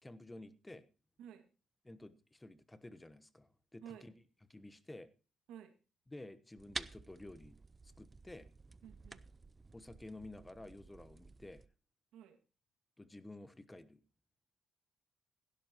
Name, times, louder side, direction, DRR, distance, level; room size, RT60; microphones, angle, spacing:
voice 1, 0.0-0.8 1.8-4.1 4.5-5.1 6.1-7.5 8.0-8.5 9.7-11.6 13.0-14.0, left 2 dB, 15° left, 14 dB, 1.1 m, -52 dB
sound 1, 6.6-11.7, right 3 dB, 25° right, 0.6 m, -50 dB
voice 2, 8.8-9.2 12.1-12.4, right 9 dB, 90° right, 6 dB, 2.1 m, -52 dB
16.5 x 12.0 x 3.0 m, 0.35 s
cardioid pair, 90°, 0 cm